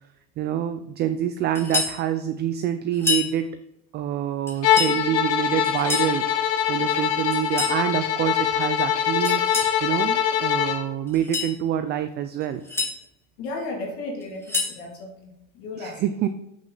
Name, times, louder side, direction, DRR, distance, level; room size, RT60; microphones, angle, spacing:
voice 1, 0.4-3.6 3.9-6.3 6.7-12.6 15.8-16.3, right 10 dB, 30° right, 10 dB, 0.3 m, -26 dB
sound 1, 1.5-2.0 2.9-3.3 4.5-5.0 5.6-6.1 7.3-7.8 9.2-9.8 11.1-11.5 12.4-12.9 14.2-14.8, left 4 dB, 5° left, 2.1 m, -27 dB
Bowed string instrument, 4.6-10.9, left 9 dB, 40° left, 0.9 m, -23 dB
voice 2, 13.4-16.0, left 2 dB, 60° left, 0 dB, 2.5 m, -34 dB
7.6 x 6.2 x 3.9 m, 0.85 s
supercardioid pair, 130°, 39 cm